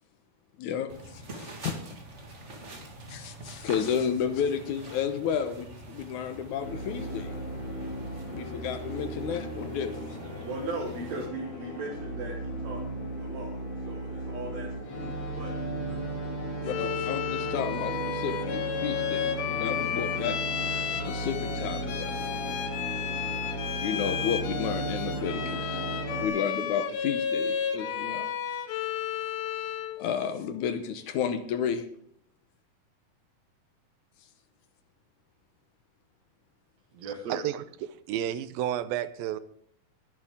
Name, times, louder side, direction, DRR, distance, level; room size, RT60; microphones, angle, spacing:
voice 1, 0.6-1.8 3.1-7.3 8.3-10.1 16.6-20.4 21.1-22.2 23.8-25.8 26.2-28.3 30.0-31.9, left 8 dB, 70° left, 9 dB, 2.0 m, -32 dB
sound 1, 0.9-11.3, right 1 dB, 30° right, 1.2 m, -45 dB
sound 2, 6.6-26.3, right 1 dB, 40° left, 4.4 m, -35 dB
voice 2, 10.4-12.8 13.2-13.5 13.8-15.5 15.8-16.0 36.9-37.4, right 2 dB, 55° right, -1 dB, 2.4 m, -38 dB
Bowed string instrument, 16.6-30.0, left 8 dB, 90° left, 3.0 m, -33 dB
voice 3, 37.3-39.4, right 11 dB, 80° right, 13 dB, 2.5 m, -31 dB
21.5 x 8.8 x 3.7 m, 0.64 s
omnidirectional pair, 4.2 m